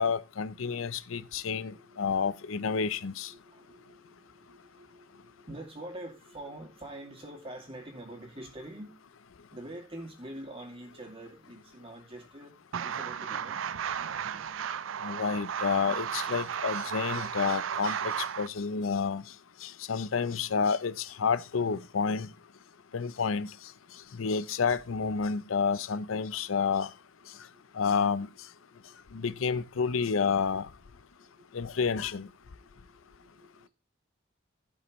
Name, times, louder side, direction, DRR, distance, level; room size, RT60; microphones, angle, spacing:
voice 1, 0.0-3.3 15.0-18.0 18.4-19.2 19.6-22.3 22.9-23.5 24.2-26.9 27.8-28.3 29.2-30.7 31.5-32.3, left 5 dB, 90° left, 0.6 m, -29 dB
voice 2, 1.7-13.7 22.7-23.0 23.9-24.2 27.4-27.8 28.7-29.2 31.2-31.8 32.4-33.7, right 1 dB, 30° right, 2.5 m, -47 dB
sound 1, 12.7-18.5, right 8 dB, 75° right, 0.4 m, -34 dB
15.5 x 5.6 x 3.1 m
head